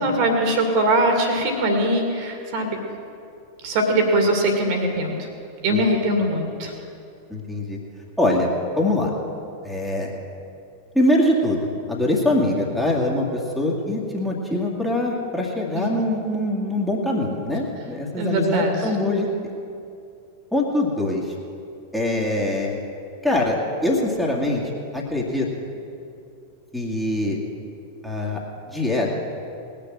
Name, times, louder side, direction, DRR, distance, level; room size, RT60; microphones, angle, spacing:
voice 1, 0.0-2.7 3.6-5.3 5.6-6.7 18.2-18.9, right 1 dB, 45° right, 3 dB, 2.3 m, -21 dB
voice 2, 7.3-7.8 8.2-8.5 8.8-9.1 9.6-10.1 10.9-19.3 20.5-21.2 21.9-22.8 23.2-24.6 24.9-25.5 26.7-27.4 28.0-28.4 28.7-29.2, left 1 dB, ahead, -4 dB, 2.1 m, -23 dB
19.5 x 6.9 x 7.6 m, 2.6 s
figure-of-eight pair, 90°, 0 cm